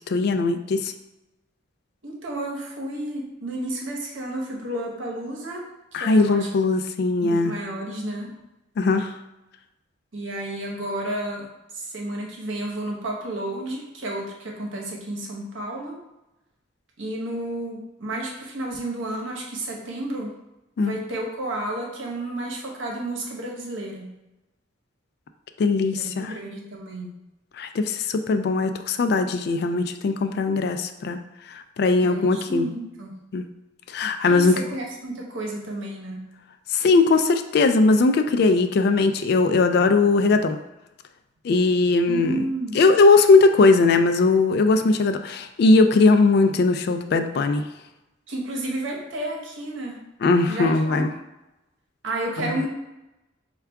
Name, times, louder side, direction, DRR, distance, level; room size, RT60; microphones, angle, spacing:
voice 1, 0.1-0.9 5.9-7.6 8.8-9.1 20.8-21.0 25.6-26.3 27.6-31.2 31.5-32.7 33.3-33.5 33.9-34.6 36.7-40.6 41.4-42.5 42.7-47.6 50.2-51.1 52.4-52.6, left 3 dB, 55° left, 8 dB, 0.3 m, -19 dB
voice 2, 2.0-5.7 5.9-6.5 7.2-8.4 10.1-11.5 11.7-16.0 17.0-20.3 20.8-24.1 25.9-27.1 32.0-33.2 34.2-36.3 42.1-42.8 48.3-50.0 50.5-51.1 52.0-52.7, right 1 dB, 80° right, -1 dB, 0.9 m, -31 dB
4.5 x 2.3 x 3.4 m, 0.97 s
head